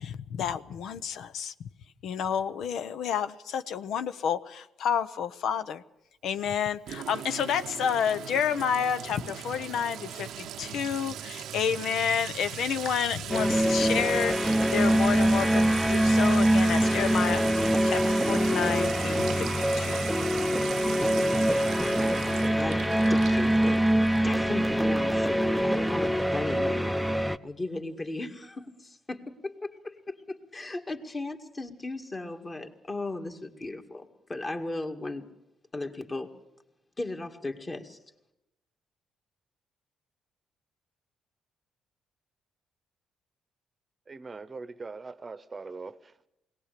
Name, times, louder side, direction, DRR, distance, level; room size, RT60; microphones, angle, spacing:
voice 1, 0.0-1.7 2.0-5.8 6.2-20.0, left 8 dB, 75° left, 0.8 m, -30 dB
Sink (filling or washing) / Trickle dribble / Fill (with liquid), 6.9-24.3, right 10 dB, 80° right, 0.7 m, -39 dB
sound 1, 13.3-27.4, right 1 dB, ahead, 0.7 m, -24 dB
voice 2, 23.1-23.8 24.2-35.3 35.7-36.3 37.0-38.0, left 2 dB, 30° left, 2.1 m, -36 dB
voice 3, 44.1-46.3, right 4 dB, 30° right, 0.9 m, -42 dB
21.5 x 18.0 x 6.8 m
cardioid pair, 90°, 0 cm